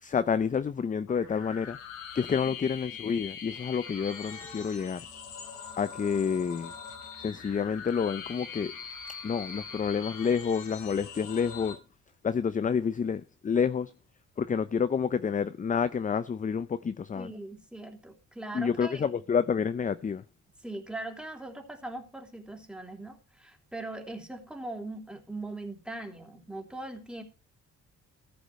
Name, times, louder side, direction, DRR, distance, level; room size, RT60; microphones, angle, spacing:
voice 1, 0.0-1.8 2.1-5.0 5.8-6.7 7.2-8.7 9.2-11.8 12.2-13.9 14.4-17.3 18.5-20.2, left 6 dB, 25° left, 0.6 m, -29 dB
sound 1, 1.1-11.7, left 6 dB, 85° left, 3.8 m, -43 dB
voice 2, 17.1-19.0 20.6-27.2, right 2 dB, 5° right, 3.2 m, -40 dB
14.5 x 5.0 x 7.5 m
cardioid pair, 90°, 30 cm